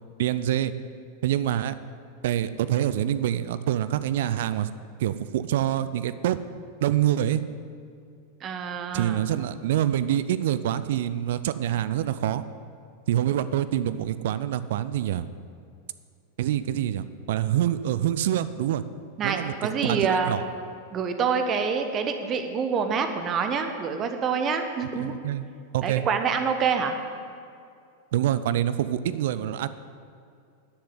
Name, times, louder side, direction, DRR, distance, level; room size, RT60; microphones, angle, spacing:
voice 1, 0.2-0.7 1.2-1.7 2.2-4.7 5.0-6.4 6.8-7.4 8.9-12.4 13.1-15.3 16.4-18.8 19.2-20.4 25.0-25.4 25.7-26.0 28.1-29.7, right 11 dB, 55° right, 14 dB, 0.5 m, -26 dB
voice 2, 8.4-9.2 19.2-20.4 20.9-25.1 25.8-27.0, right 6 dB, 30° right, 6 dB, 1.1 m, -26 dB
11.0 x 6.8 x 9.4 m, 2.4 s
figure-of-eight pair, 90°, 0 cm